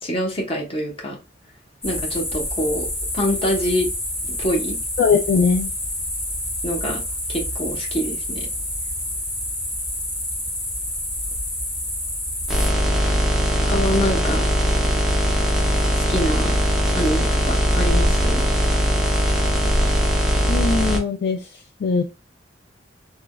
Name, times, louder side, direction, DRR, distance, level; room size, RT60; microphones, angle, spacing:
voice 1, 0.0-1.2 1.8-2.9 3.1-3.9 4.4-4.8 6.6-7.0 7.3-8.5 13.7-14.4 16.0-16.6 16.9-18.4, equal, 30° left, 0.9 m, -25 dB
sound 1, 1.8-12.7, left 1 dB, 15° left, 1.3 m, -28 dB
voice 2, 5.0-5.7 20.5-21.4 21.8-22.0, left 5 dB, 60° left, 0.3 m, -20 dB
sound 2, 12.5-21.0, equal, 5° right, 0.7 m, -20 dB
3.4 x 2.2 x 2.2 m
head